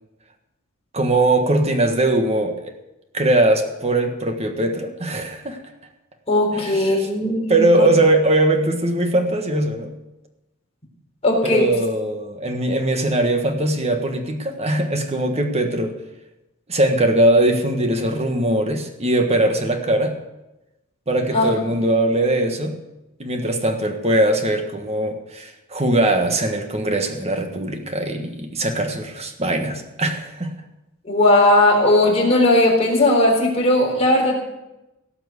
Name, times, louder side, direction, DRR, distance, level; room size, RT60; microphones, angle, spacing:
voice 1, 0.9-2.6 3.1-5.6 6.5-7.1 7.5-9.9 11.4-16.0 16.7-20.2 21.1-22.8 23.2-30.5, right 1 dB, 30° right, 5 dB, 1.5 m, -20 dB
voice 2, 6.3-7.9 11.2-11.7 21.3-21.5 31.0-34.4, left 1 dB, 30° left, -1 dB, 3.9 m, -17 dB
17.5 x 6.0 x 8.2 m, 0.98 s
head